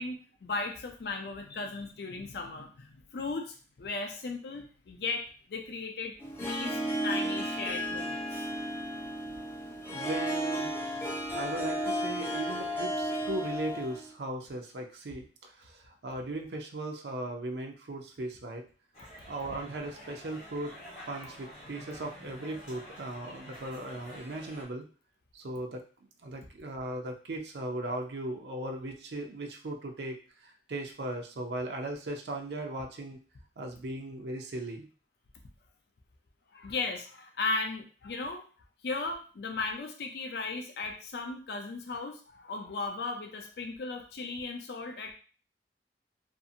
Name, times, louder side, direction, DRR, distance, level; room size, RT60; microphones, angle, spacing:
voice 1, 0.0-8.4 36.5-38.4 38.8-45.1, left 3 dB, 65° left, 4 dB, 0.4 m, -36 dB
Harp, 6.2-14.1, equal, 15° left, 0.7 m, -33 dB
voice 2, 9.9-10.7 11.3-18.6 19.3-20.8 21.1-24.9 25.3-25.8 26.2-33.2 33.6-34.9, right 1 dB, 75° right, 3 dB, 0.5 m, -38 dB
sound 1, 18.9-24.6, equal, 40° left, 1.3 m, -48 dB
2.7 x 2.4 x 2.6 m, 0.38 s
head